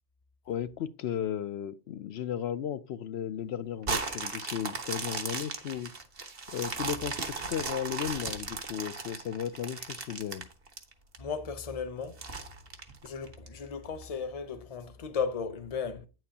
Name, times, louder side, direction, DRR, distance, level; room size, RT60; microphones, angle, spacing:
voice 1, 0.5-5.9 6.5-10.5, left 9 dB, 75° left, 0.8 m, -35 dB
sound 1, 3.8-11.2 11.6-11.7 12.2-13.5 14.0-14.1, right 4 dB, 55° right, 1.4 m, -36 dB
voice 2, 11.2-12.2 13.0-16.1, left 6 dB, 35° left, 0.8 m, -35 dB
9.5 x 7.6 x 2.8 m
omnidirectional pair, 1.1 m